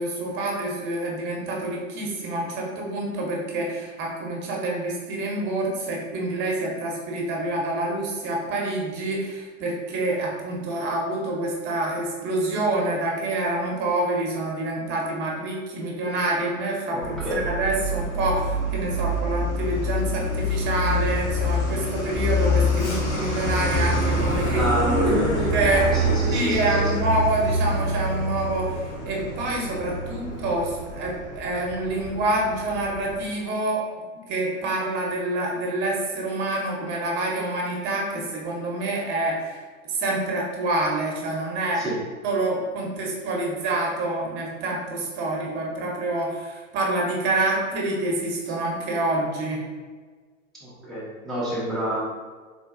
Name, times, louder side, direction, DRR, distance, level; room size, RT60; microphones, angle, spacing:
voice 1, 0.0-25.9 26.3-33.8 34.1-39.6 39.9-41.8 42.2-49.6, right 2 dB, 25° right, -2 dB, 0.7 m, -27 dB
voice 2, 16.9-17.4 24.5-25.6 25.9-26.9 41.7-42.0 50.6-52.0, equal, ahead, -10 dB, 0.4 m, -28 dB
Truck, 17.0-33.2, equal, 60° left, 1.0 m, -26 dB
3.8 x 2.3 x 2.4 m, 1.4 s
hypercardioid pair, 110°, 41 cm